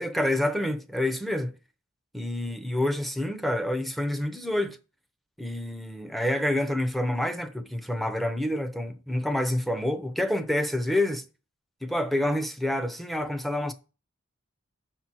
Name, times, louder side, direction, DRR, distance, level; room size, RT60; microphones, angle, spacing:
voice 1, 0.0-1.5 2.1-4.8 5.4-11.2 11.8-13.7, left 1 dB, ahead, 0.6 m, -28 dB
6.5 x 4.4 x 6.1 m
head